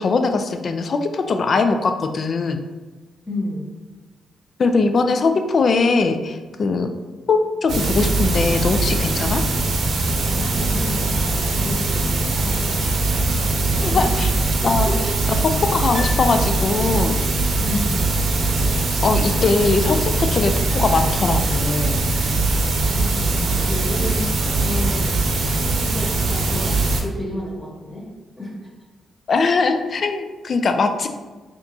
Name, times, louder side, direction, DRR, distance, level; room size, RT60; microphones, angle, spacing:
voice 1, 0.0-2.6 4.6-6.9 7.3-9.4 13.8-14.3 14.6-14.9 15.4-17.2 19.0-22.0 29.3-31.1, left 4 dB, 50° left, 7 dB, 0.4 m, -20 dB
voice 2, 3.2-3.7 10.2-13.4 13.9-14.1 14.6-15.0 17.6-17.9 22.8-25.1 25.7-28.1 28.4-28.5, left 1 dB, 20° left, -4 dB, 1.3 m, -31 dB
sound 1, 7.7-27.0, right 2 dB, 75° right, 0.7 m, -21 dB
Piano, 15.9-17.2 17.5-17.6, left 3 dB, 30° right, 1.0 m, -36 dB
4.2 x 2.9 x 2.7 m, 1.3 s
cardioid pair, 75°, 0 cm